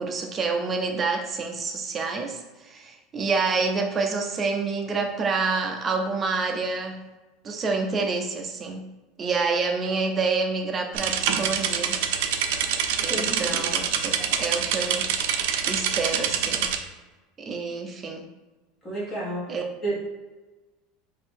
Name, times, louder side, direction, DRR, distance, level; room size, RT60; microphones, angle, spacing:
voice 1, 0.0-7.0 7.4-8.9 9.2-12.0 13.0-15.1 15.7-16.7 17.4-18.3 19.5-19.6, right 4 dB, 20° right, 3 dB, 0.5 m, -28 dB
sound 1, 10.9-16.8, right 8 dB, 70° right, 0.4 m, -26 dB
voice 2, 13.1-13.6 18.8-19.5 19.8-20.0, right 1 dB, 20° left, -7 dB, 1.5 m, -30 dB
3.9 x 2.6 x 4.5 m, 1.2 s
supercardioid pair, 160°, 0 cm